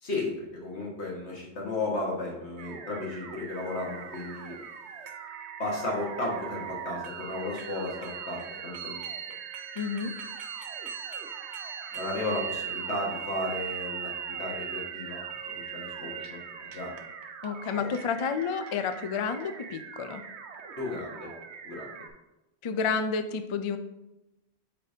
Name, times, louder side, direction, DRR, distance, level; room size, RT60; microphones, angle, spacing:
voice 1, 0.0-4.5 5.6-9.1 11.9-17.0 17.8-17.9 20.8-21.3 21.6-21.9, left 2 dB, 85° left, -2 dB, 1.9 m, -34 dB
sound 1, 2.6-22.1, right 6 dB, 90° right, 1.0 m, -44 dB
sound 2, 3.5-19.4, right 8 dB, 55° right, 0.7 m, -40 dB
voice 2, 9.8-10.1 17.4-20.2 22.6-23.8, left 5 dB, 50° left, 9 dB, 0.4 m, -30 dB
8.5 x 5.0 x 2.8 m, 0.99 s
omnidirectional pair, 1.1 m